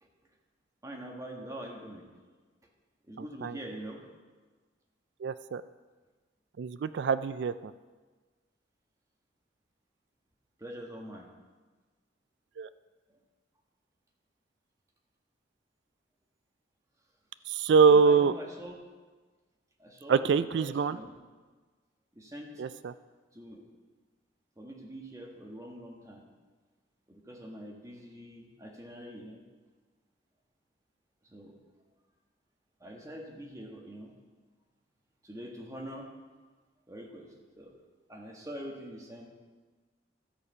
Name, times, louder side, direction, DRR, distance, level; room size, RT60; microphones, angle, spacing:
voice 1, 0.8-2.1 3.1-4.0 10.6-11.3 17.9-18.8 19.8-21.1 22.1-22.5 23.3-23.6 24.6-26.2 27.1-29.4 31.2-31.5 32.8-34.1 35.2-36.1 36.9-37.3 37.6-37.7 38.1-39.3, equal, 15° right, 0 dB, 1.5 m, -44 dB
voice 2, 3.2-3.6 5.2-5.6 6.6-7.7 12.6-12.7 17.5-18.3 20.1-21.0 22.6-22.9, right 5 dB, 65° right, 14 dB, 0.3 m, -24 dB
13.0 x 6.8 x 5.5 m, 1.4 s
head